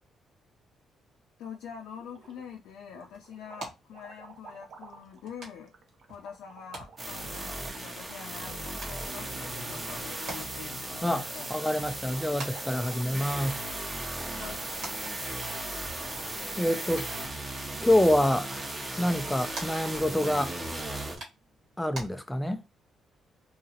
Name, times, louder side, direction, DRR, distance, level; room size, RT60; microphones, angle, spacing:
voice 1, 1.4-5.7 6.1-11.5 14.3-14.7, left 7 dB, 85° left, 0.4 m, -45 dB
sound 1, 2.0-2.6 2.9-15.6, right 5 dB, 60° right, 0.6 m, -54 dB
sound 2, 2.2-22.1, right 2 dB, 75° right, 1.2 m, -49 dB
sound 3, 7.0-21.2, right 1 dB, 20° right, 0.8 m, -36 dB
voice 2, 11.5-13.6 16.6-17.1 17.8-18.7 19.0-20.6 21.8-22.7, left 1 dB, 5° left, 0.4 m, -26 dB
2.8 x 2.3 x 2.7 m
cardioid pair, 90°, 0 cm